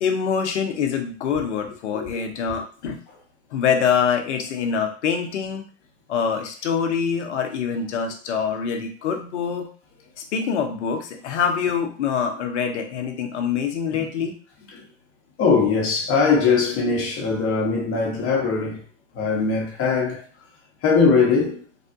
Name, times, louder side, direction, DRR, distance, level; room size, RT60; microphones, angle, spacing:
voice 1, 0.0-3.0 3.5-5.6 6.1-9.7 10.3-14.3, left 7 dB, 80° left, 0.7 m, -25 dB
voice 2, 15.4-18.8 19.1-20.2 20.8-21.6, left 5 dB, 40° left, 0.9 m, -20 dB
3.4 x 2.3 x 2.5 m
hypercardioid pair, 100°, 34 cm